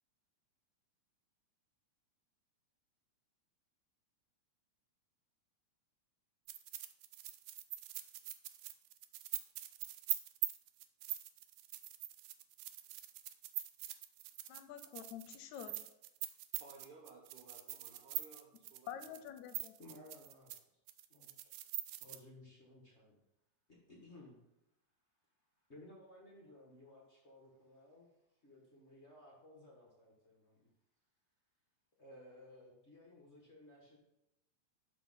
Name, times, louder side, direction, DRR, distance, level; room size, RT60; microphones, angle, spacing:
sound 1, 6.5-20.6 20.9-22.2, right 14 dB, 80° right, 1.9 m, -43 dB
voice 1, 14.5-15.8 18.9-19.7, left 10 dB, 80° left, 8 dB, 1.9 m, -48 dB
voice 2, 16.6-19.2, right 3 dB, 65° right, 0 dB, 1.4 m, -58 dB
voice 3, 19.8-20.5 21.1-21.3 22.0-23.2 23.9-24.4 25.7-28.1 28.4-30.7 32.0-34.0, left 1 dB, 40° left, -3 dB, 1.0 m, -58 dB
6.0 x 5.5 x 5.6 m, 0.86 s
omnidirectional pair, 3.3 m